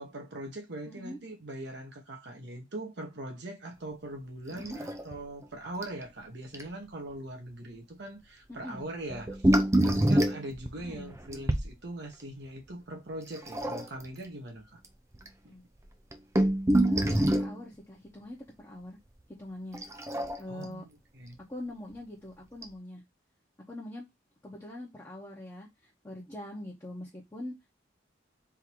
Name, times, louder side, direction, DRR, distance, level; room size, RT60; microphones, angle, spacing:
voice 1, 0.0-9.5 9.8-14.8 15.4-15.6 20.5-20.9 21.1-21.4, right 1 dB, 60° right, 1.1 m, -41 dB
voice 2, 0.9-1.2 4.5-4.8 8.5-8.9 10.8-11.1 15.4-15.6 16.9-19.0 19.4-19.8 20.4-20.8 21.5-23.0 23.7-24.1 24.4-27.8, left 1 dB, 15° left, 0.9 m, -43 dB
sound 1, 4.6-5.2 5.4-5.5 5.8-6.0 6.5-6.6 9.1-11.7 13.3-14.1 14.8-14.9 15.1-15.3 15.9-17.6 19.7-20.6 21.9-22.0 22.6-22.7, right 1 dB, 15° right, 0.5 m, -26 dB
3.7 x 2.8 x 4.5 m
head